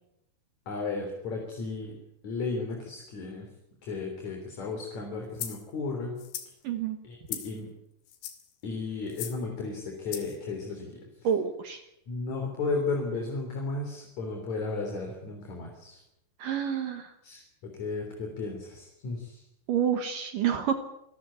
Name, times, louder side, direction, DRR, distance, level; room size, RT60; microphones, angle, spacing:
voice 1, 0.7-1.9 2.2-3.5 3.8-6.2 7.0-7.7 8.6-11.0 12.1-16.0 17.2-17.4 17.8-19.4, left 3 dB, 40° left, 2 dB, 4.1 m, -34 dB
sound 1, 5.4-5.6 6.2-6.5 7.3-7.6 8.1-8.5 9.1-9.4 10.1-10.4, left 11 dB, 80° left, 4.8 m, -38 dB
voice 2, 6.6-7.0 11.2-11.8 16.4-17.1 19.7-20.7, right 8 dB, 75° right, 8 dB, 2.0 m, -28 dB
26.0 x 14.0 x 8.6 m, 0.82 s
omnidirectional pair, 5.9 m